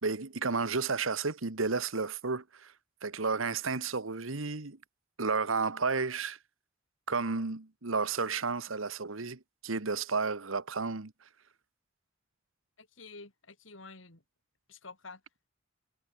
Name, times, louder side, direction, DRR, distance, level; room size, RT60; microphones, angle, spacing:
voice 1, 0.0-2.7 3.0-4.8 5.2-6.4 7.1-11.1, right 4 dB, 85° right, 1.4 m, -32 dB
voice 2, 12.8-14.2 14.7-15.2, left 3 dB, 70° left, 5.1 m, -49 dB
head